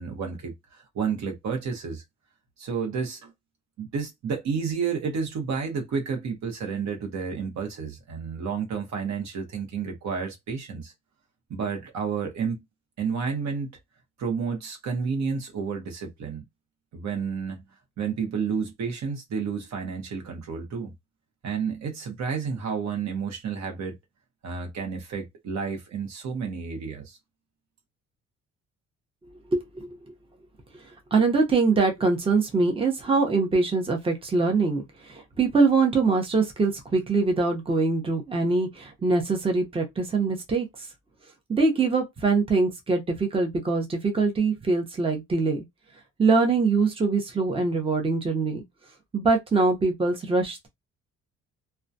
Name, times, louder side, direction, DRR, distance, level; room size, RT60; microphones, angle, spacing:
voice 1, 0.0-2.0 2.6-3.3 3.8-10.9 11.5-12.6 13.0-13.8 14.2-16.4 16.9-17.6 18.0-20.9 21.4-24.0 24.4-27.2, right 6 dB, 65° right, 0.9 m, -31 dB
voice 2, 29.5-29.9 31.1-40.7 41.5-45.6 46.2-48.6 49.1-50.7, right 4 dB, 20° right, 0.7 m, -23 dB
2.2 x 2.2 x 2.6 m
cardioid pair, 90°, 30 cm